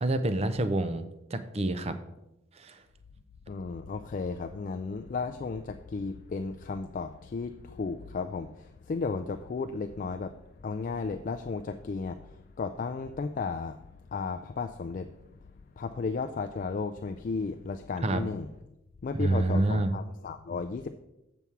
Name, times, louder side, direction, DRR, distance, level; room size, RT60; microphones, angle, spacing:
voice 1, 0.0-1.1 1.3-1.9 2.6-2.8 18.0-18.2 19.1-19.9, right 2 dB, 30° right, 0.5 m, -27 dB
voice 2, 3.5-18.5 19.0-20.9, left 4 dB, 40° left, 0.3 m, -34 dB
7.1 x 7.0 x 4.6 m
head